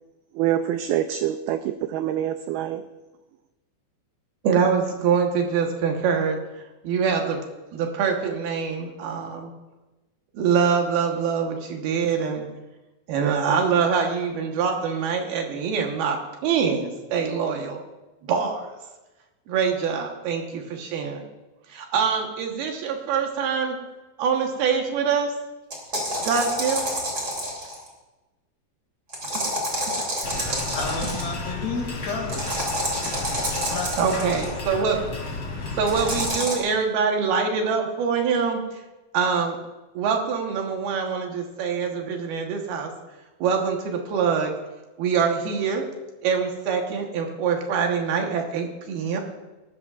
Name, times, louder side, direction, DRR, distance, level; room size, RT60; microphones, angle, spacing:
voice 1, 0.4-2.8, right 11 dB, 85° right, 9 dB, 2.2 m, -25 dB
voice 2, 4.4-6.4 6.8-7.4 7.7-9.5 10.3-12.5 13.1-17.8 18.2-18.7 19.5-21.2 21.7-23.8 24.2-25.3 26.2-26.8 34.0-35.0 35.8-38.8 39.1-39.6 39.9-42.9 43.4-44.5 45.0-45.8 46.2-49.2, right 6 dB, 70° right, 2 dB, 2.9 m, -24 dB
sound 1, 25.7-27.9 29.1-31.3 32.3-34.5 35.9-36.6, equal, 25° right, 2.8 m, -28 dB
sound 2, 30.2-36.3, left 2 dB, 35° left, 3.1 m, -33 dB
voice 3, 30.7-32.5 33.7-34.3, left 4 dB, 70° left, 1 dB, 4.2 m, -31 dB
18.0 x 13.0 x 2.4 m, 1.1 s
omnidirectional pair, 4.9 m